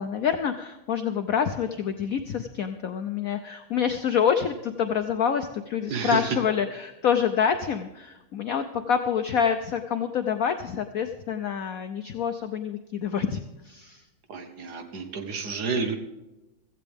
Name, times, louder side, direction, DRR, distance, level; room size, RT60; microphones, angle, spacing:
voice 1, 0.0-14.0, left 7 dB, 90° left, 8 dB, 0.7 m, -27 dB
voice 2, 5.9-6.3 14.3-16.0, right 5 dB, 55° right, 6 dB, 1.5 m, -30 dB
16.0 x 14.5 x 3.5 m, 1.0 s
omnidirectional pair, 2.3 m